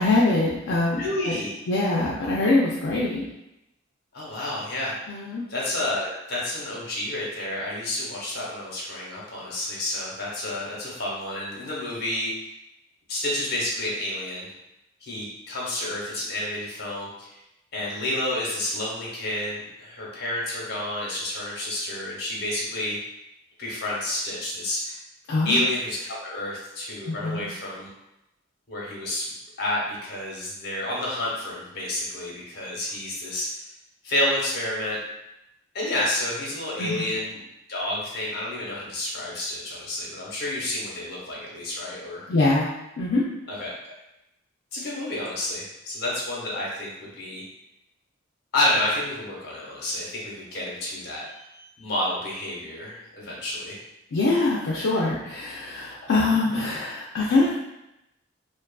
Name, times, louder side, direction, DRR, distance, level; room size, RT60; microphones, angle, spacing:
voice 1, 0.0-1.3 1.7-3.3 5.1-5.5 25.3-25.6 27.1-27.5 36.8-37.0 42.3-42.7 43.0-43.2 54.1-57.6, left 2 dB, 70° left, -5 dB, 0.4 m, -23 dB
voice 2, 1.0-1.5 4.1-4.9 5.5-12.3 13.1-14.5 15.0-17.4 17.7-23.0 23.6-25.0 25.4-27.9 28.7-29.3 29.6-33.5 34.0-35.0 35.7-37.4 37.7-42.2 43.5-43.9 44.7-47.4 48.5-53.8, left 1 dB, 55° left, -4 dB, 0.8 m, -30 dB
2.6 x 2.3 x 2.2 m, 0.88 s
head